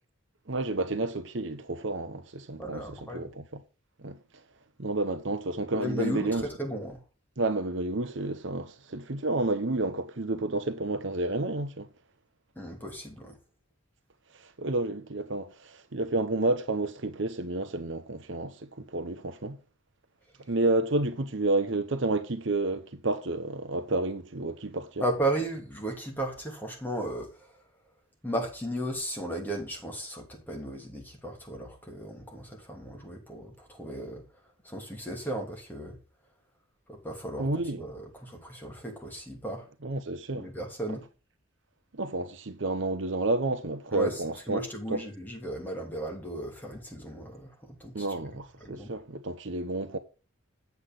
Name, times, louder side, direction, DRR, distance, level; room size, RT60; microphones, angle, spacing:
voice 1, 0.5-3.6 4.0-4.2 4.8-6.4 7.4-11.9 14.3-19.6 20.5-25.0 37.4-37.8 39.8-40.5 40.9-41.0 41.9-44.6 44.9-45.0 47.9-50.0, right 2 dB, 60° right, 0.9 m, -30 dB
voice 2, 2.6-3.3 5.7-7.0 12.6-13.4 25.0-27.5 28.2-34.2 34.6-36.0 36.9-39.7 40.3-41.0 43.9-44.2 44.5-47.5 47.8-48.1 48.6-48.9, right 1 dB, 10° left, 2.9 m, -35 dB
8.2 x 8.1 x 3.7 m
head